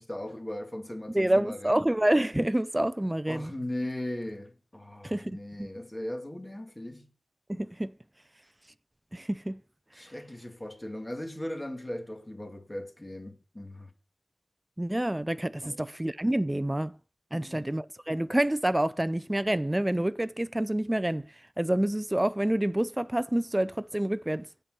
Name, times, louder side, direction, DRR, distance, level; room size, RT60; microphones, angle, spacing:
voice 1, 0.0-1.8 3.3-7.1 9.9-13.9 15.6-15.8 17.3-17.7, left 1 dB, 15° left, 2.2 m, -38 dB
voice 2, 1.1-3.5 5.0-5.7 7.5-7.9 9.1-9.6 14.8-16.9 17.3-21.2 21.6-24.5, right 1 dB, 10° right, 0.5 m, -28 dB
7.8 x 5.8 x 7.8 m
wide cardioid pair, 85°, 0 cm